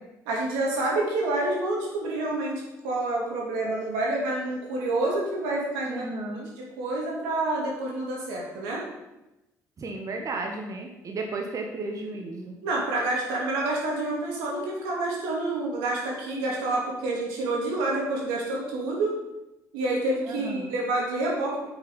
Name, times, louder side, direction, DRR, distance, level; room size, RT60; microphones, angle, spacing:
voice 1, 0.3-6.1 6.3-8.8 12.6-19.2 19.7-21.7, right 2 dB, 90° right, -2 dB, 2.5 m, -28 dB
voice 2, 5.9-6.5 9.8-12.6 20.2-20.7, right 3 dB, 45° right, 2 dB, 1.4 m, -34 dB
8.4 x 6.1 x 5.4 m, 0.95 s
supercardioid pair, 65°, 8 cm